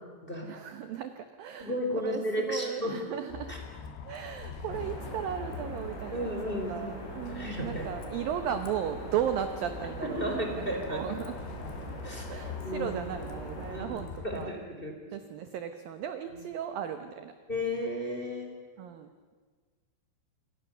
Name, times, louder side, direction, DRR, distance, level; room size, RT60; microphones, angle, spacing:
voice 1, 0.4-1.1 1.4-3.5 4.1-6.3 6.7-11.4 12.3-14.5 15.1-17.3 18.8-19.3, right 9 dB, 75° right, 8 dB, 2.2 m, -36 dB
voice 2, 1.6-2.9 3.5-3.6 6.1-6.9 7.3-8.0 10.0-11.0 12.0-12.3 12.6-13.0 13.7-14.0 14.2-14.9 17.5-18.5, equal, 10° left, 2 dB, 3.6 m, -33 dB
Bus, 3.3-14.5, left 6 dB, 70° left, 4.4 m, -44 dB
sound 1, 4.7-13.8, right 1 dB, 40° left, 5.8 m, -42 dB
28.0 x 25.0 x 6.8 m, 1.6 s
omnidirectional pair, 5.4 m